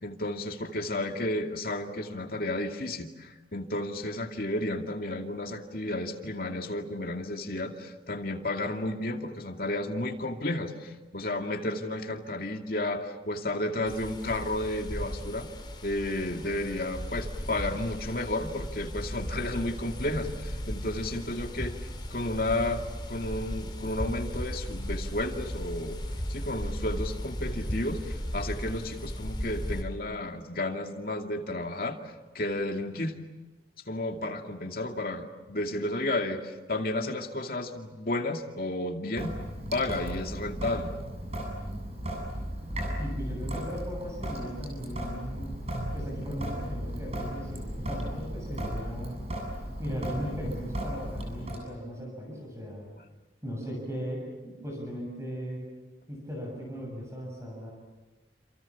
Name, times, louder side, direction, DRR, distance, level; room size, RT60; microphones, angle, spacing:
voice 1, 0.0-15.5 15.8-21.7 22.1-26.0 26.3-32.0 32.3-33.2 33.9-39.4 39.7-40.9, left 1 dB, 55° left, 3 dB, 2.5 m, -32 dB
sound 1, 13.8-29.8, equal, 25° left, 3.5 m, -36 dB
Sink (filling or washing) / Drip, 39.1-51.6, equal, 35° right, 7.9 m, -35 dB
voice 2, 43.0-45.5 45.9-49.2 49.8-52.9 53.4-55.6 56.1-57.7, equal, 15° right, -1 dB, 7.4 m, -37 dB
28.5 x 28.0 x 7.2 m, 1.2 s
head